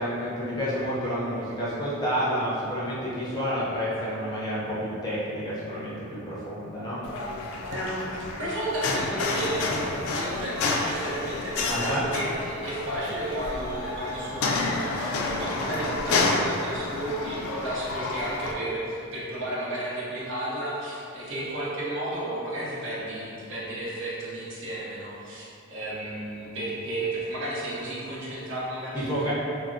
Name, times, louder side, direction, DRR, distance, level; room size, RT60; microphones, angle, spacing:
voice 1, 0.0-7.0 11.7-12.1 28.9-29.3, equal, 20° left, -9 dB, 0.6 m, -29 dB
sound 1, 7.0-18.5, left 3 dB, 70° left, 0.3 m, -29 dB
voice 2, 7.6-29.3, right 1 dB, 60° right, -7 dB, 0.7 m, -33 dB
3.5 x 2.0 x 2.5 m, 2.7 s
head